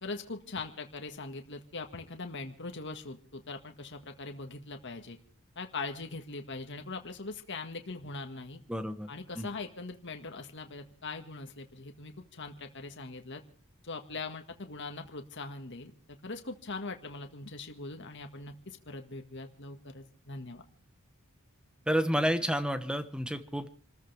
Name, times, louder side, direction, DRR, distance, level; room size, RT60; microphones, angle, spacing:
voice 1, 0.0-5.2 5.6-8.6 9.1-13.4 13.8-15.9 16.2-20.6, left 3 dB, 55° left, 5 dB, 1.8 m, -41 dB
voice 2, 8.7-9.1 9.4-9.5 21.9-23.7, equal, 5° right, 10 dB, 1.2 m, -30 dB
28.5 x 14.0 x 3.5 m, 0.39 s
head